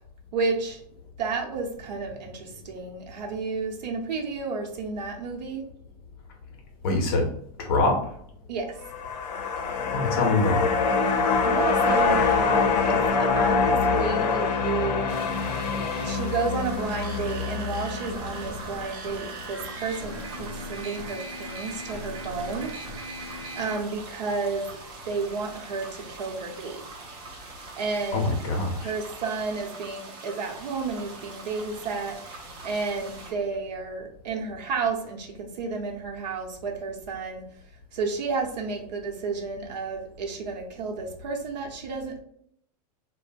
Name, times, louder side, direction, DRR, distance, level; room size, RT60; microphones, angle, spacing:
voice 1, 0.3-0.8 1.2-5.6 8.5-8.7 11.4-15.1 15.9-22.7 23.6-24.7 25.0-26.8 27.8-28.3 28.8-32.2 32.6-37.4 37.9-42.2, right 4 dB, 85° right, 2 dB, 0.7 m, -31 dB
voice 2, 6.8-7.3 7.6-8.1 9.9-10.7 28.1-28.9, left 2 dB, 35° left, 2 dB, 0.5 m, -24 dB
sound 1, 8.8-19.2 19.5-19.6, left 5 dB, 80° left, 0.5 m, -25 dB
sound 2, 15.1-33.3, right 3 dB, 20° right, 0.3 m, -44 dB
sound 3, 16.6-23.7, right 1 dB, 50° right, 0.7 m, -39 dB
3.0 x 2.0 x 2.5 m, 0.67 s
supercardioid pair, 175°, 21 cm